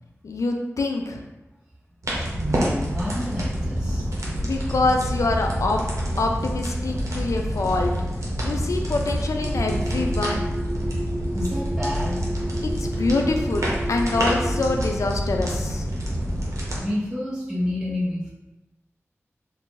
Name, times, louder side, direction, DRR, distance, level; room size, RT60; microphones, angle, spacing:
voice 1, 0.2-1.2 4.4-5.8 6.2-7.9 8.4-10.6 12.8-15.9, left 3 dB, 90° left, 2 dB, 0.4 m, -25 dB
sound 1, 2.0-16.8, equal, 80° right, 0.8 m, -27 dB
voice 2, 2.3-4.1 11.3-12.2 16.7-18.3, left 1 dB, 15° right, -8 dB, 1.2 m, -29 dB
sound 2, 9.4-14.8, right 1 dB, 35° right, 1.1 m, -33 dB
2.7 x 2.5 x 3.8 m, 1.0 s
wide cardioid pair, 65°, 5 cm